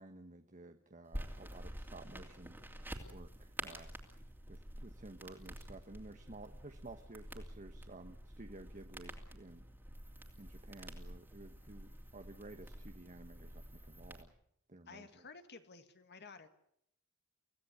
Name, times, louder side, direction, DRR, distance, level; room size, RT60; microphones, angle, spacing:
voice 1, 0.0-2.6 3.1-3.9 4.5-9.6 10.4-14.3 14.7-15.3, right 2 dB, 35° right, 7 dB, 1.1 m, -53 dB
sound 1, 1.1-14.2, right 1 dB, 10° right, 2.8 m, -49 dB
voice 2, 14.9-16.5, left 4 dB, 50° left, 9 dB, 1.9 m, -53 dB
25.5 x 16.5 x 8.2 m, 0.73 s
head